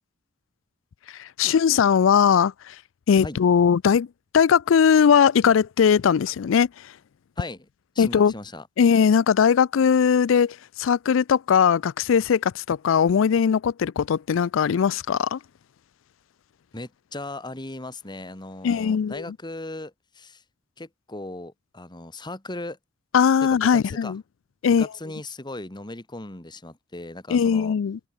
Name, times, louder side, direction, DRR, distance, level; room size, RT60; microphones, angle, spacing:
voice 1, 1.1-2.8 3.1-4.1 4.3-6.9 8.0-8.3 8.8-15.4 18.6-19.2 23.1-24.2 24.6-24.9 27.3-28.0, left 7 dB, 75° left, 0.4 m, -20 dB
voice 2, 7.4-7.7 8.0-8.7 16.7-20.4 20.8-22.8 23.4-24.1 24.8-27.7, left 2 dB, 20° left, 1.9 m, -37 dB
head